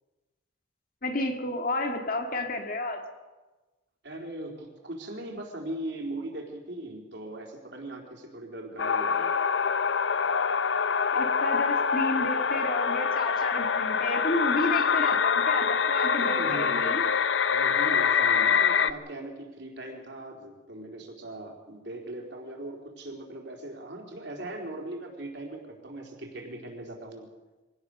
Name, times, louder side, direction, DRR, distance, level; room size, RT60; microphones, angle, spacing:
voice 1, 1.0-3.0 11.1-17.0, left 2 dB, 45° left, 5 dB, 2.2 m, -31 dB
voice 2, 4.0-9.4 16.2-17.0 17.5-27.3, right 1 dB, 60° right, 1 dB, 4.1 m, -39 dB
sound 1, 8.8-18.9, left 6 dB, 70° left, 0.7 m, -25 dB
24.0 x 17.5 x 6.7 m, 1.2 s
head